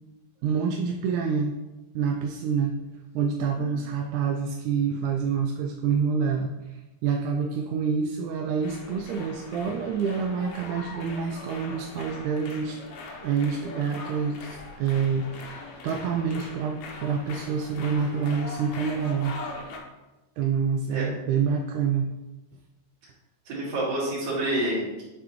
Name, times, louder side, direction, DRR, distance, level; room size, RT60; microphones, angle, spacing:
voice 1, 0.4-1.5 2.0-2.8 3.2-12.8 13.2-19.4 20.4-22.1, right 6 dB, 80° right, 2 dB, 1.9 m, -27 dB
sound 1, 8.6-19.8, left 3 dB, 70° left, 2.1 m, -41 dB
voice 2, 23.5-25.0, right 1 dB, 65° right, -6 dB, 3.3 m, -28 dB
8.0 x 4.8 x 3.1 m, 1.1 s
omnidirectional pair, 3.6 m